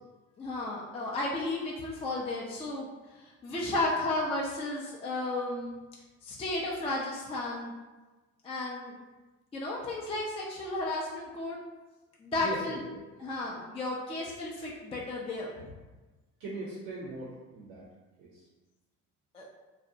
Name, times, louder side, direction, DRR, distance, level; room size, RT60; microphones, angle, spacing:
voice 1, 0.4-2.9 3.1-5.7 6.2-7.7 8.4-9.0 9.5-11.6 12.2-12.8 13.2-15.7 19.3-19.5, left 2 dB, 15° left, -3 dB, 0.4 m, -33 dB
voice 2, 12.4-13.0 16.4-17.8 18.2-18.4, right 2 dB, 80° right, -5 dB, 0.6 m, -40 dB
2.6 x 2.1 x 2.5 m, 1.2 s
hypercardioid pair, 60°, 39 cm